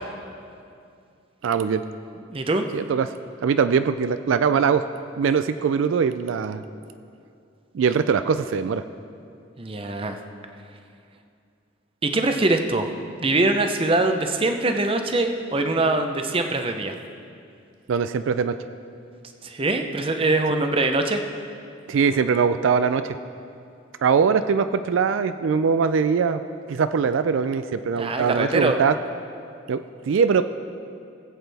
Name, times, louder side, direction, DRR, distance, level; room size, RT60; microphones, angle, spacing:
voice 1, 1.4-1.8 2.7-3.1 3.4-4.8 5.2-6.6 7.7-8.8 17.9-18.6 21.9-23.2 24.0-26.4 26.7-29.0 29.7-30.4, right 6 dB, 75° right, 11 dB, 0.3 m, -21 dB
voice 2, 2.3-2.7 9.6-10.2 12.0-12.9 13.2-16.9 19.4-21.2 28.0-28.8, right 2 dB, 25° right, 6 dB, 0.6 m, -23 dB
19.5 x 7.9 x 3.4 m, 2.4 s
head